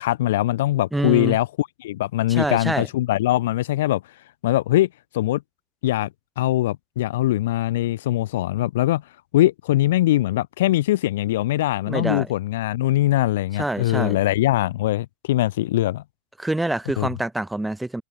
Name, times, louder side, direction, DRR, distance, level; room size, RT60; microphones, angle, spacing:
voice 1, 0.0-4.0 4.4-4.9 5.1-5.4 5.8-6.1 6.4-9.0 9.3-16.0 17.0-17.1, left 15 dB, 70° left, 1.9 m, -22 dB
voice 2, 0.9-1.4 2.3-2.9 11.9-12.3 13.6-14.2 16.4-18.0, right 1 dB, 5° right, 0.9 m, -26 dB
hypercardioid pair, 105°, 0 cm